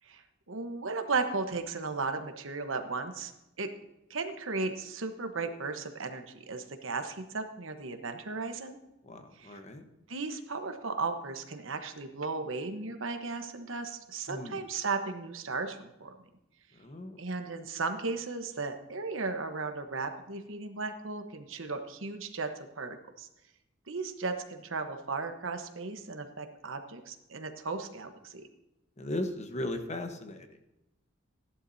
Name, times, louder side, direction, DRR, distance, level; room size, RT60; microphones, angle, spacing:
voice 1, 0.5-3.3 3.6-3.7 4.1-8.8 9.4-9.6 10.1-16.1 17.2-23.3 23.9-28.4, right 4 dB, 75° right, 7 dB, 1.1 m, -35 dB
voice 2, 9.1-9.8 14.3-14.6 16.8-17.2 29.0-30.5, left 1 dB, 35° left, 6 dB, 1.1 m, -37 dB
15.5 x 11.0 x 2.7 m, 0.93 s
head